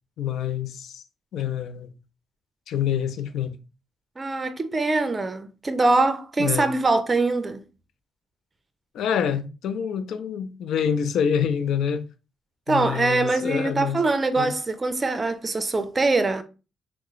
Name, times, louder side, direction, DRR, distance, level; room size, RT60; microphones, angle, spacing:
voice 1, 0.2-1.0 1.3-1.9 2.7-3.5 6.4-6.7 8.9-12.1 12.7-14.0 14.4-14.5, left 8 dB, 75° left, 0.4 m, -26 dB
voice 2, 4.2-7.6 12.7-16.4, right 3 dB, 25° right, 0.4 m, -23 dB
3.4 x 2.0 x 3.1 m
cardioid pair, 90°, 0 cm